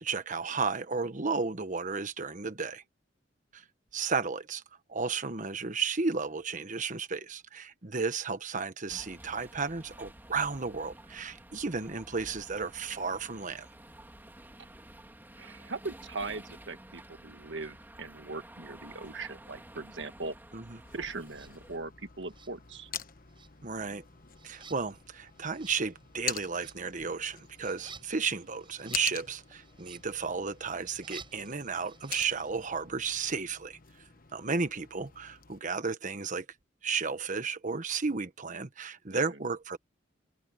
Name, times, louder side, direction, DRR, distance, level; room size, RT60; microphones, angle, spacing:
voice 1, 0.0-2.8 3.5-3.6 3.9-4.6 4.9-13.7 20.5-20.8 23.6-24.0 24.4-33.8 34.3-36.5 36.8-39.8, right 5 dB, 45° right, 1.3 m, -33 dB
sound 1, 8.9-21.8, right 1 dB, 10° right, 2.8 m, -51 dB
voice 2, 15.4-20.3 20.9-22.9 39.1-39.4, right 3 dB, 70° right, 1.6 m, -40 dB
sound 2, 20.8-35.6, left 10 dB, 50° left, 1.2 m, -45 dB
sound 3, 21.3-21.5 22.3-23.0 23.3-32.7, right 5 dB, 25° right, 7.6 m, -53 dB
open air
head